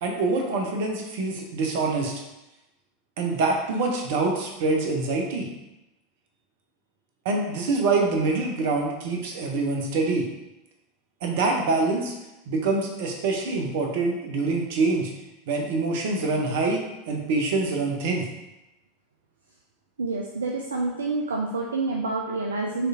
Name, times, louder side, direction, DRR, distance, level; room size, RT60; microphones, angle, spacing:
voice 1, 0.0-2.1 3.2-5.5 7.2-10.3 11.2-12.1 12.5-15.1 15.5-16.8 17.1-18.3, right 3 dB, 60° right, 1 dB, 0.7 m, -25 dB
voice 2, 20.0-22.9, right 3 dB, 75° right, 0 dB, 0.3 m, -28 dB
4.2 x 3.2 x 2.7 m, 0.97 s
figure-of-eight pair, 85°, 0 cm